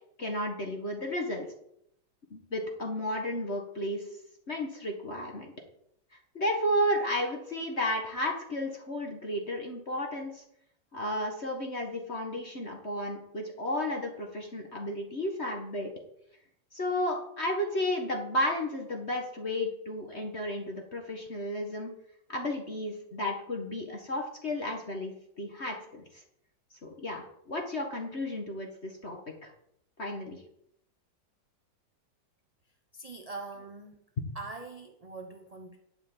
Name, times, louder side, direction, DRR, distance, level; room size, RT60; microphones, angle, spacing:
voice 1, 0.2-1.5 2.3-4.1 4.5-5.5 6.4-10.4 10.9-15.9 16.7-21.9 22.3-26.2 26.8-29.5 30.0-30.4, left 1 dB, 40° left, 2 dB, 1.8 m, -33 dB
voice 2, 32.9-34.0 34.3-35.8, right 3 dB, 30° right, 4 dB, 0.7 m, -42 dB
12.0 x 5.8 x 8.9 m, 0.75 s
omnidirectional pair, 2.0 m